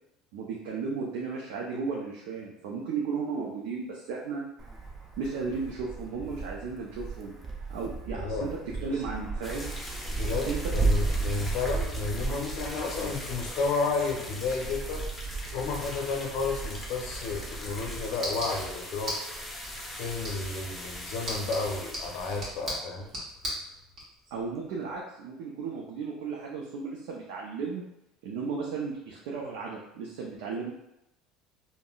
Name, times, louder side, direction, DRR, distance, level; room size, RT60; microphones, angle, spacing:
voice 1, 0.3-4.4 5.2-7.3 7.7-9.7 10.4-10.6 24.3-27.8 28.2-30.7, right 5 dB, 80° right, -2 dB, 0.5 m, -34 dB
Wind, 4.6-19.5, right 3 dB, 30° right, 0.6 m, -35 dB
voice 2, 8.1-8.5 10.2-10.5 10.7-15.0 15.5-19.2 20.0-23.1, left 4 dB, 70° left, 0 dB, 0.6 m, -31 dB
sound 1, 9.4-23.7 24.0-24.1 24.3-24.4 24.9-25.0, left 1 dB, 15° left, 0.7 m, -41 dB
sound 2, 17.4-24.0, equal, 50° right, 1.4 m, -39 dB
3.6 x 2.1 x 2.3 m, 0.85 s
supercardioid pair, 95°, 0 cm